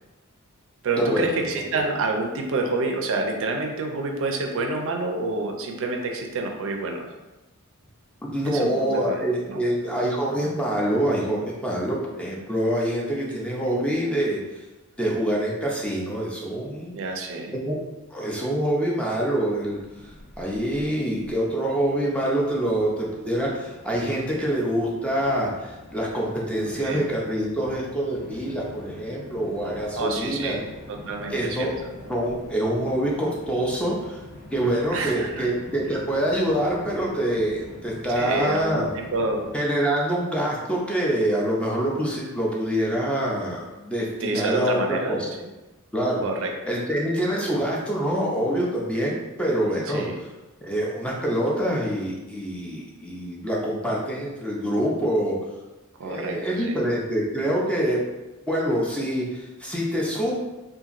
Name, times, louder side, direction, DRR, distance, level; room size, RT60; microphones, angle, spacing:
voice 1, 0.8-7.1 8.4-9.2 9.5-9.6 16.9-17.6 26.8-27.0 29.9-31.7 34.9-35.5 38.2-39.5 44.2-45.2 46.2-46.5 49.9-50.2 56.0-56.8, right 3 dB, 65° right, 3 dB, 0.4 m, -28 dB
voice 2, 8.2-14.7 15.0-16.9 17.5-17.8 18.1-30.6 31.3-31.7 32.1-34.2 34.5-38.9 39.5-45.3 45.9-46.3 46.6-50.3 50.6-55.4 56.0-58.0 58.5-60.3, right 1 dB, 5° left, -3 dB, 0.4 m, -25 dB
Train, 19.5-39.5, left 1 dB, 40° left, 0.7 m, -45 dB
2.8 x 2.5 x 2.4 m, 1.1 s
head